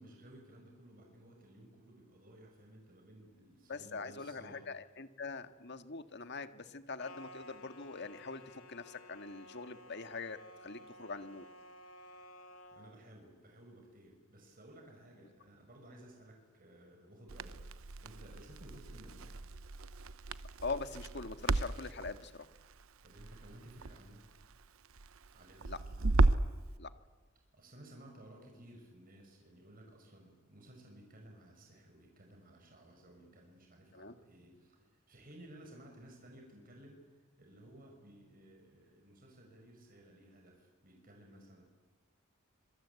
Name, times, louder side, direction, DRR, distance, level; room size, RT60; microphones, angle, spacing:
voice 1, 0.0-4.7 12.0-12.2 12.7-19.4 23.0-24.3 25.3-26.0 27.5-41.6, right 1 dB, 40° right, 2 dB, 6.0 m, -57 dB
voice 2, 3.7-11.5 20.6-22.5 25.7-25.8 26.8-26.9 33.9-34.1, left 4 dB, 55° left, 9 dB, 1.8 m, -43 dB
sound 1, 7.0-13.0, left 1 dB, 80° left, 2.4 m, -54 dB
Crackle, 17.3-26.6, right 2 dB, 70° right, 0.9 m, -35 dB
26.5 x 26.0 x 8.3 m, 1.4 s
head